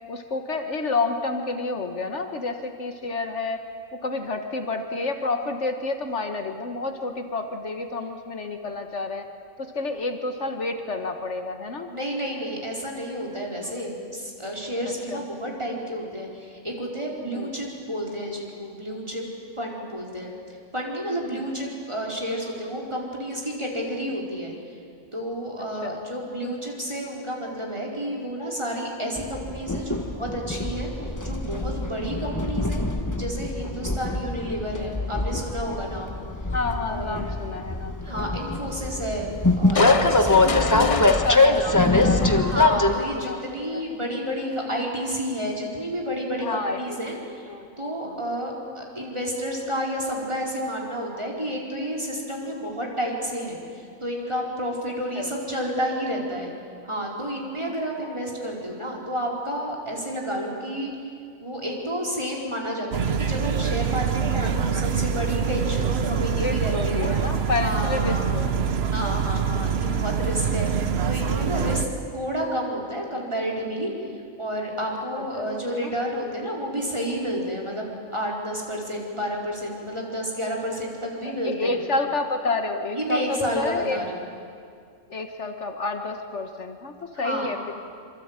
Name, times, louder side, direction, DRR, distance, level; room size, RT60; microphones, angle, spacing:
voice 1, 0.1-3.6 4.0-9.3 9.6-11.9 13.6-13.8 15.1-15.2 17.3-17.5 19.8-19.9 21.4-21.5 25.8-26.0 36.5-38.7 40.5-43.4 43.7-43.8 46.4-47.0 47.5-47.7 48.0-48.2 55.1-55.3 65.7-65.9 66.3-68.8 69.3-69.8 71.5-71.9 75.1-75.9 81.2-84.0 85.1-87.7, left 3 dB, 60° left, 6 dB, 1.8 m, -30 dB
voice 2, 11.9-19.3 19.6-20.3 20.7-24.5 25.1-30.9 31.2-32.8 33.1-36.2 36.9-37.4 38.0-39.3 39.6-41.0 42.4-47.4 47.8-56.5 56.8-60.9 61.4-67.2 67.6-68.4 68.9-70.7 71.1-73.9 74.4-81.8 82.9-84.2 87.1-87.5, equal, 20° right, -2 dB, 4.7 m, -30 dB
Train, 29.2-42.9, left 2 dB, 15° left, 1.3 m, -23 dB
Crushing, 39.7-43.1 43.6-43.7, left 5 dB, 35° left, 0.6 m, -29 dB
sound 1, 62.9-71.9, right 7 dB, 55° right, 1.1 m, -25 dB
26.0 x 24.5 x 9.0 m, 2.3 s
omnidirectional pair, 1.3 m